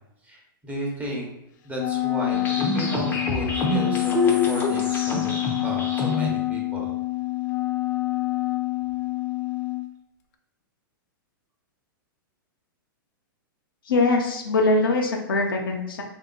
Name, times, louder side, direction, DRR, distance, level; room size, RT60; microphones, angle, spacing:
voice 1, 0.2-1.3 1.6-6.9, right 1 dB, 15° right, -3 dB, 1.1 m, -34 dB
Wind instrument woodwind instrument, 1.7-9.9, left 19 dB, 55° left, 0.5 m, -27 dB
sound 1, 2.3-6.3, left 3 dB, 15° left, 0.8 m, -26 dB
voice 2, 13.8-16.0, left 2 dB, 80° left, 1 dB, 0.8 m, -22 dB
3.4 x 2.9 x 3.9 m, 0.85 s
hypercardioid pair, 130°, 12 cm